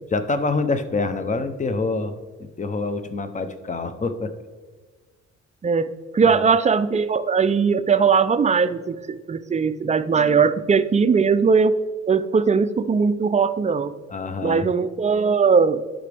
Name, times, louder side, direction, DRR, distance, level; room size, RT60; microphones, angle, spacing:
voice 1, 0.1-4.3 6.2-6.4 14.1-14.7, left 3 dB, 25° left, 10 dB, 0.7 m, -26 dB
voice 2, 5.6-11.7 12.1-13.9 14.4-15.8, right 5 dB, 25° right, 13 dB, 0.4 m, -19 dB
11.5 x 5.1 x 3.4 m, 1.4 s
cardioid pair, 90°, 30 cm